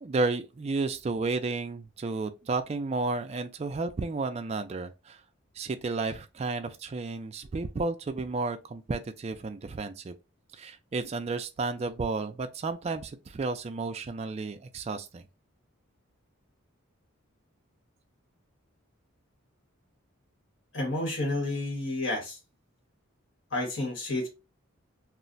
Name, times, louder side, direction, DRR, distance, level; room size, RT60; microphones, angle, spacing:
voice 1, 0.0-5.2 5.6-10.1 10.5-15.2, right 3 dB, 30° right, 0.3 m, -32 dB
voice 2, 20.7-22.4 23.5-24.3, left 2 dB, 55° left, 1.2 m, -30 dB
2.4 x 2.1 x 3.8 m
head